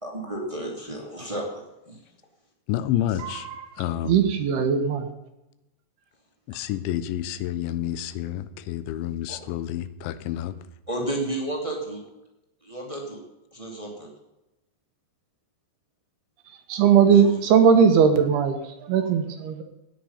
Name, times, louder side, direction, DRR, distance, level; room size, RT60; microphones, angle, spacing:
voice 1, 0.0-1.4 1.9-2.0 3.1-3.2 9.3-9.4 10.9-12.0 12.6-13.2 13.5-14.1 17.1-17.4, right 1 dB, 15° right, -1 dB, 1.4 m, -32 dB
voice 2, 2.7-3.5 3.8-4.3 6.5-10.5, left 12 dB, 90° left, 13 dB, 3.1 m, -29 dB
voice 3, 3.2-3.5 4.0-5.1 16.7-19.6, right 7 dB, 70° right, 6 dB, 3.0 m, -19 dB
16.0 x 9.5 x 5.6 m, 0.92 s
omnidirectional pair, 5.1 m